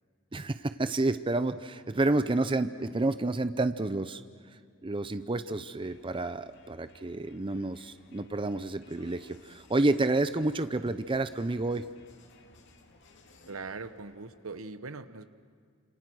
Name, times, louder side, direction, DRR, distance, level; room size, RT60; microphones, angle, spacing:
voice 1, 0.3-4.2 4.8-11.8, right 2 dB, 25° right, 11 dB, 0.6 m, -29 dB
Crowd, 5.7-14.6, left 3 dB, 60° left, 2.4 m, -59 dB
voice 2, 13.4-15.3, right 3 dB, 80° right, 11 dB, 1.1 m, -41 dB
28.5 x 27.5 x 6.3 m, 2.1 s
head